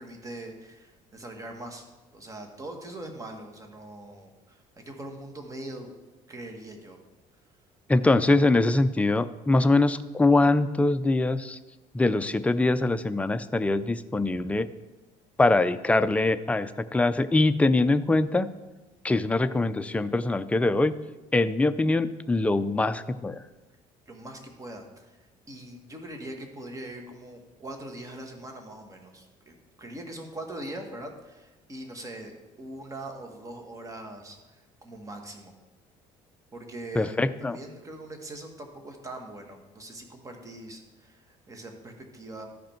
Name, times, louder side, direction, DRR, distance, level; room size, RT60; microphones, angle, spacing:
voice 1, 0.0-1.8 2.1-5.9 6.3-7.0 24.1-35.5 36.5-42.4, right 1 dB, 25° right, 4 dB, 1.6 m, -42 dB
voice 2, 7.9-11.6 11.9-14.7 15.4-18.5 19.0-20.9 21.3-23.4 36.9-37.6, left 2 dB, 10° left, 10 dB, 0.4 m, -23 dB
13.0 x 5.1 x 4.5 m, 1.1 s
cardioid pair, 110°, 14 cm